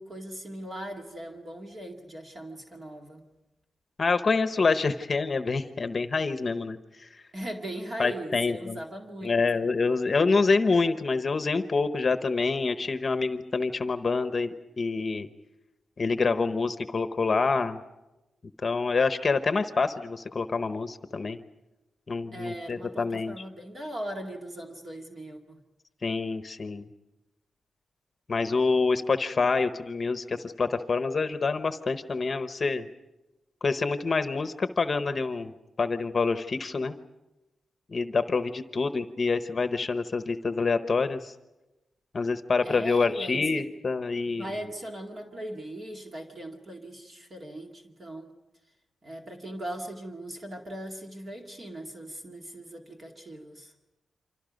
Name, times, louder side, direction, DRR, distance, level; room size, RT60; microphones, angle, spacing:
voice 1, 0.0-3.3 7.3-9.4 22.3-25.6 42.6-43.7 44.4-48.3 49.0-53.7, right 1 dB, 35° right, 2 dB, 2.2 m, -39 dB
voice 2, 4.0-7.2 8.0-8.8 9.2-15.3 16.0-17.8 18.6-21.4 22.1-23.3 26.0-26.8 28.3-32.9 33.6-35.5 35.8-36.9 37.9-41.3 42.1-44.5, left 4 dB, 35° left, 9 dB, 1.0 m, -27 dB
29.0 x 25.5 x 5.2 m, 0.99 s
wide cardioid pair, 135°, 0 cm